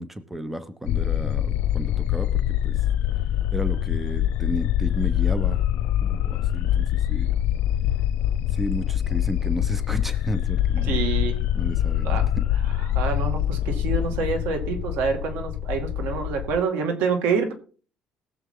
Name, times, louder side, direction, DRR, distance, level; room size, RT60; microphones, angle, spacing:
voice 1, 0.0-2.8 3.5-5.6 6.0-7.3 8.5-11.0 11.5-12.4, equal, 5° right, 12 dB, 0.9 m, -33 dB
sound 1, 0.9-16.6, left 11 dB, 90° left, 0.6 m, -24 dB
voice 2, 10.9-11.4 12.0-12.2 12.7-17.5, right 5 dB, 90° right, 6 dB, 2.3 m, -27 dB
19.5 x 7.2 x 3.9 m, 0.40 s
cardioid pair, 135°, 3 cm